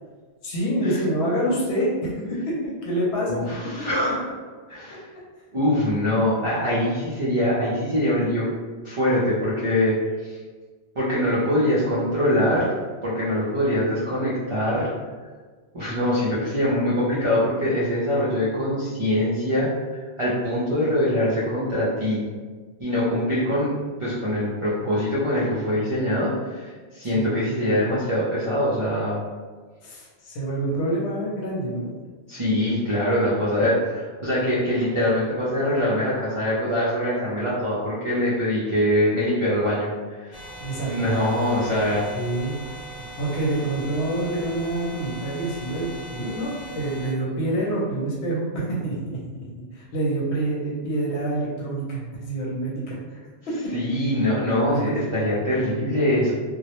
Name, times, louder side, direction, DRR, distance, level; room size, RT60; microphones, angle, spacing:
voice 1, 0.4-3.4 27.1-27.4 29.8-31.9 40.6-41.1 42.1-42.6 43.0-49.4 49.7-53.2 53.5-53.6 54.7-55.0, right 1 dB, 85° left, -4 dB, 0.9 m, -27 dB
voice 2, 3.3-4.2 4.7-5.0 5.5-8.5 8.8-10.4 11.0-12.7 13.0-14.9 15.7-22.3 22.8-23.7 24.0-29.2 32.3-40.3 40.9-42.0 53.7-56.3, left 1 dB, 45° right, -9 dB, 0.4 m, -23 dB
sound 1, 40.3-47.1, right 1 dB, 40° left, 0.5 m, -39 dB
2.2 x 2.0 x 2.9 m, 1.4 s
omnidirectional pair, 1.1 m